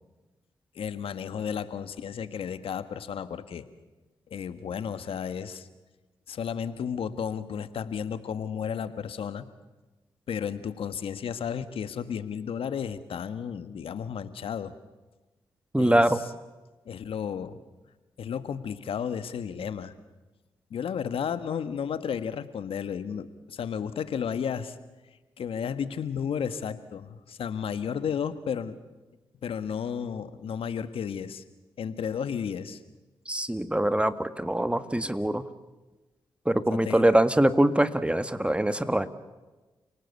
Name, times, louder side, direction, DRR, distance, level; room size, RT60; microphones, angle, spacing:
voice 1, 0.7-3.7 4.3-5.7 6.3-9.4 10.3-14.7 15.8-16.2 16.8-17.6 18.2-19.9 20.7-24.8 25.4-28.7 29.4-31.4 31.8-32.8 36.7-37.1, left 7 dB, 75° left, 12 dB, 1.5 m, -33 dB
voice 2, 15.7-16.2 33.3-35.4 36.4-39.1, right 1 dB, 10° right, 12 dB, 1.8 m, -23 dB
30.0 x 18.5 x 8.3 m, 1.2 s
supercardioid pair, 50°, 10 cm